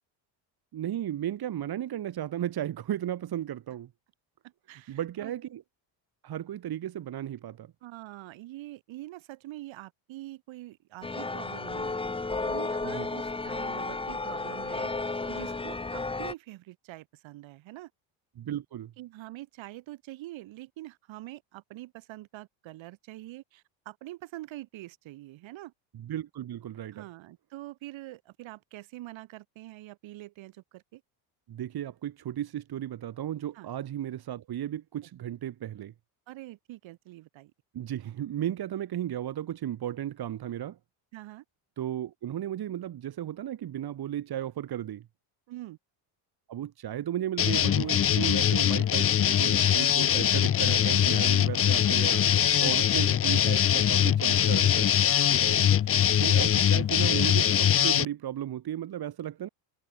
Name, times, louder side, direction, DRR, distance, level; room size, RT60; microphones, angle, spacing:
voice 1, 0.7-3.9 4.9-5.6 6.2-7.7 12.8-13.1 18.4-18.9 25.9-27.0 31.5-35.9 37.7-40.8 41.8-45.1 46.5-52.2 52.6-55.0 56.2-59.5, right 11 dB, 50° right, 2.8 m, -35 dB
voice 2, 4.4-5.3 7.8-14.9 15.3-17.9 19.0-25.7 26.9-31.0 33.5-33.7 36.3-37.5 41.1-41.4 45.5-45.8 50.6-51.2 52.1-52.7 52.9-53.0 55.3-55.7, right 17 dB, 70° right, 4.4 m, -45 dB
sound 1, 11.0-16.3, left 3 dB, 10° left, 1.2 m, -33 dB
sound 2, 47.4-58.1, left 10 dB, 30° left, 0.6 m, -23 dB
cardioid pair, 105°, 49 cm